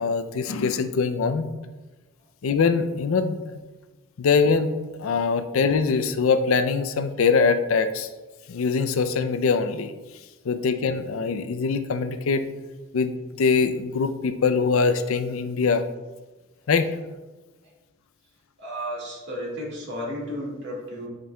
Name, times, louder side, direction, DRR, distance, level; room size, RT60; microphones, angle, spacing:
voice 1, 0.0-1.5 2.4-3.6 4.2-4.7 5.0-8.1 8.5-9.9 10.5-12.4 12.9-15.8 16.7-16.9, left 5 dB, 85° left, 10 dB, 0.4 m, -23 dB
voice 2, 18.6-21.1, equal, 60° right, -3 dB, 1.9 m, -33 dB
8.7 x 5.2 x 2.3 m, 1.2 s
head